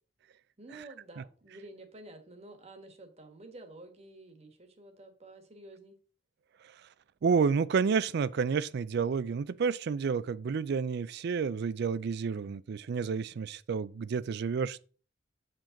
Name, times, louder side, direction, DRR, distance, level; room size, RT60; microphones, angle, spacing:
voice 1, 0.6-5.9, right 2 dB, 35° right, 1.3 m, -50 dB
voice 2, 7.2-14.9, right 5 dB, 60° right, 0.4 m, -30 dB
7.3 x 5.1 x 3.8 m
head